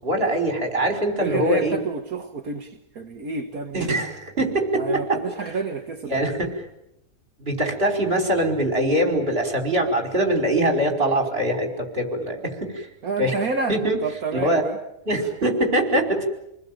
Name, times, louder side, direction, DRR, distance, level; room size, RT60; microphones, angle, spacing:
voice 1, 0.0-1.8 3.7-5.2 6.1-6.5 7.4-12.9 13.2-13.4 13.7-14.0 14.3-14.6 15.1-16.3, right 1 dB, 40° right, 3 dB, 5.6 m, -23 dB
voice 2, 1.2-4.0 4.7-6.3 13.0-14.8, right 4 dB, 75° right, 3 dB, 2.0 m, -29 dB
29.0 x 20.5 x 9.2 m, 0.83 s
omnidirectional pair, 1.5 m